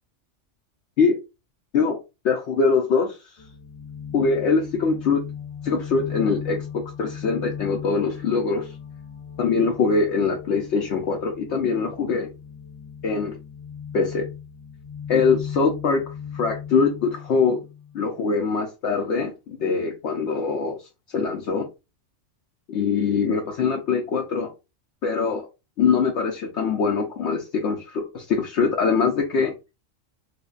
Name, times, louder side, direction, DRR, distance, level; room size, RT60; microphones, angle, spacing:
voice 1, 2.2-3.2 4.1-5.3 5.6-8.7 9.4-12.3 13.0-13.4 13.9-14.3 15.1-16.0 16.3-17.6 17.9-20.8 21.1-21.7 22.7-24.5 25.0-25.5 25.8-29.5, left 5 dB, 70° left, 0.9 m, -23 dB
sound 1, 3.4-18.1, left 8 dB, 50° left, 0.5 m, -37 dB
4.9 x 2.1 x 2.4 m
omnidirectional pair, 1.3 m